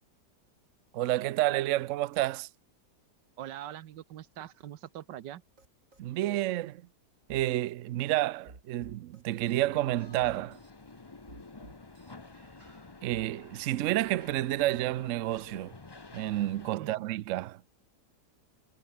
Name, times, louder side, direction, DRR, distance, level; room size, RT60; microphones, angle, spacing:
voice 1, 0.9-2.5 6.0-6.9 7.3-10.6 13.0-15.7 16.1-17.6, right 15 dB, 70° right, 0.7 m, -30 dB
voice 2, 3.4-5.4 16.8-17.1, right 12 dB, 90° right, 1.5 m, -43 dB
sound 1, 5.6-5.7 5.9-6.5 7.3-7.5 8.5-9.7 10.2-10.7 11.3-12.1 12.6-13.3, right 3 dB, 45° right, 4.2 m, -53 dB
sound 2, 9.4-16.8, left 3 dB, 20° left, 0.8 m, -50 dB
omnidirectional pair, 1.8 m